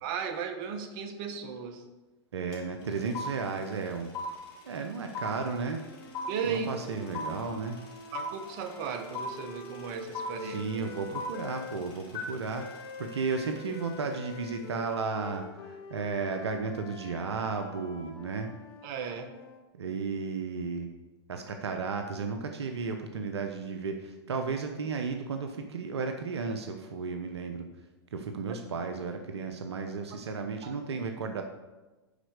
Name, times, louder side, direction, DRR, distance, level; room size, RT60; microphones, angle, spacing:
voice 1, 0.0-1.8 6.3-6.7 8.1-10.6 18.8-19.3 30.6-30.7, right 7 dB, 55° right, 7 dB, 1.3 m, -35 dB
voice 2, 2.3-4.1 4.6-5.8 6.4-7.8 10.4-18.5 19.7-20.9 21.3-27.7 28.1-31.4, right 4 dB, 85° right, 5 dB, 1.0 m, -34 dB
sound 1, 2.5-2.6 2.8-14.0, left 3 dB, 40° left, 3.2 m, -39 dB
Flute - C major - bad-tempo-staccato, 5.6-11.8 12.5-19.6, left 6 dB, 70° left, 1.3 m, -46 dB
10.5 x 4.4 x 6.6 m, 1.1 s
hypercardioid pair, 110°, 14 cm